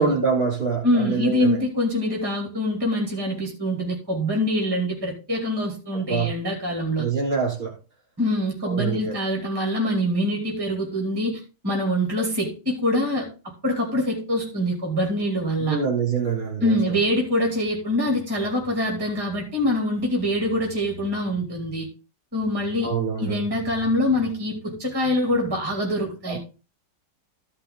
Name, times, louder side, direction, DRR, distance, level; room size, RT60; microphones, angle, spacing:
voice 1, 0.0-1.6 6.1-6.3 7.0-7.7 8.6-9.2 15.7-16.7 22.8-23.4 26.2-26.4, right 5 dB, 30° right, 3.2 m, -25 dB
voice 2, 0.8-7.1 8.2-13.3 13.6-15.8 16.6-21.9 22.3-26.4, left 1 dB, 15° right, 2.6 m, -24 dB
13.5 x 5.6 x 3.8 m
omnidirectional pair, 1.9 m